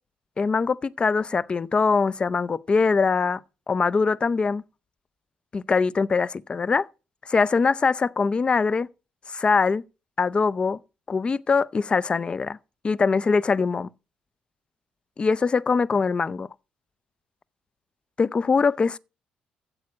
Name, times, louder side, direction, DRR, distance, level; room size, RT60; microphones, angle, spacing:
voice 1, 0.4-3.4 3.7-4.6 5.5-6.9 7.3-8.9 9.3-9.8 10.2-10.8 11.1-12.6 12.8-13.9 15.2-16.5 18.2-19.0, left 4 dB, 35° left, 0.5 m, -22 dB
8.8 x 7.6 x 6.0 m
cardioid pair, 80°, 3 cm